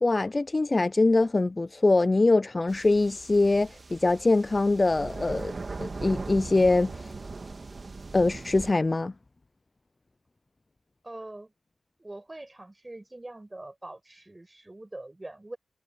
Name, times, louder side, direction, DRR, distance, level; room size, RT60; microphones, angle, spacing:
voice 1, 0.0-5.5 5.8-7.1 8.1-9.1, left 2 dB, 30° left, 0.3 m, -23 dB
sound 1, 2.7-8.7, right 3 dB, 40° right, 2.1 m, -39 dB
voice 2, 11.0-11.5 12.0-15.6, right 2 dB, 20° right, 5.5 m, -43 dB
cardioid pair, 75°, 0 cm